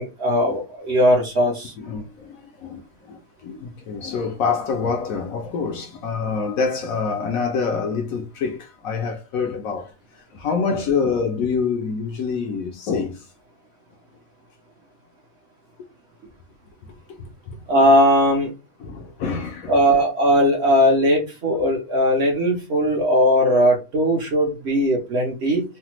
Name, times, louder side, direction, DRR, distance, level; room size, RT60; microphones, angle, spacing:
voice 1, 0.0-1.7 17.7-18.5 19.7-25.6, equal, 55° right, 0.8 m, -18 dB
voice 2, 1.8-9.9 10.3-13.2 17.5-17.6 18.8-19.8, left 5 dB, 70° left, 0.9 m, -26 dB
3.3 x 2.1 x 2.9 m
omnidirectional pair, 1.7 m